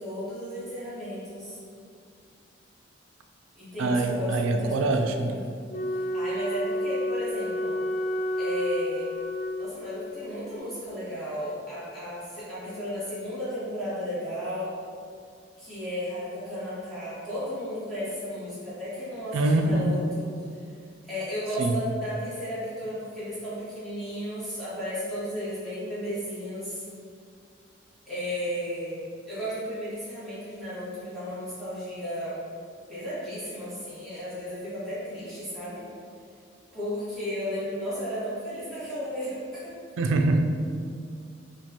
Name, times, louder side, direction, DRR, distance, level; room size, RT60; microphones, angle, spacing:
voice 1, 0.0-1.6 3.6-5.5 5.9-7.8 8.4-9.1 9.6-14.7 15.6-20.3 21.1-26.9 28.1-32.4 32.9-35.9 36.7-39.8, equal, ahead, -13 dB, 1.3 m, -34 dB
voice 2, 3.8-5.4 19.3-20.0 21.6-21.8 40.0-40.4, right 2 dB, 85° right, 5 dB, 0.3 m, -24 dB
Wind instrument woodwind instrument, 5.7-10.1, left 1 dB, 35° left, 0.3 m, -30 dB
4.5 x 2.4 x 2.8 m, 2.3 s
head